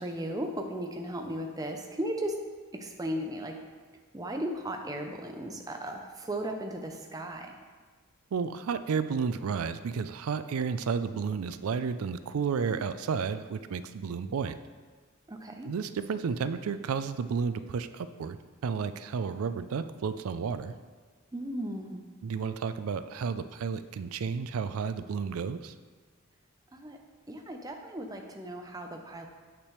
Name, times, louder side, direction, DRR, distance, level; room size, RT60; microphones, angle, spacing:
voice 1, 0.0-2.4 2.7-3.6 4.1-7.6 15.3-15.7 21.3-22.0 26.7-27.0 27.3-29.3, right 1 dB, 15° right, 3 dB, 0.5 m, -36 dB
voice 2, 8.3-14.6 15.6-18.4 18.6-20.7 22.2-25.7, right 6 dB, 80° right, 12 dB, 0.4 m, -32 dB
8.3 x 5.9 x 3.1 m, 1.4 s
head